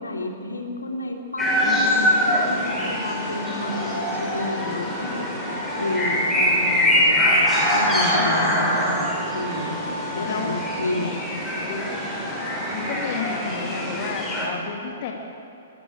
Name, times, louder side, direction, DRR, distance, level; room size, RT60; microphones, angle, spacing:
voice 1, 0.0-11.1, left 2 dB, 75° left, 2 dB, 3.1 m, -31 dB
sound 1, 1.4-14.5, equal, 5° left, 5.9 m, -23 dB
voice 2, 1.6-3.0 3.5-3.8 8.2-8.8 10.3-10.5 11.0-11.1 11.6-11.9 12.7-15.1, left 6 dB, 40° left, 2 dB, 2.1 m, -33 dB
Wind instrument woodwind instrument, 2.1-11.2, right 2 dB, 70° right, 3.1 m, -36 dB
22.0 x 14.0 x 8.6 m, 2.8 s
figure-of-eight pair, 115°, 0 cm